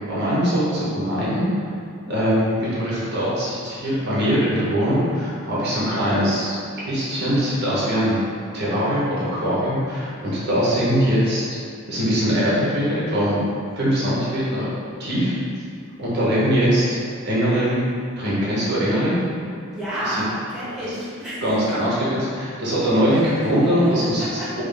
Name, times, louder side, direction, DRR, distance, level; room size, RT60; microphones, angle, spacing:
voice 1, 0.1-1.5 2.1-6.6 6.9-8.2 8.5-11.6 11.9-13.4 13.7-14.7 15.0-15.3 16.0-16.8 17.2-17.8 18.2-19.2 20.0-20.2 21.4-24.6, equal, 50° right, -8 dB, 1.0 m, -21 dB
voice 2, 19.7-21.4 23.4-23.5 24.2-24.5, right 1 dB, ahead, -12 dB, 1.2 m, -29 dB
3.7 x 3.1 x 3.4 m, 2.3 s
head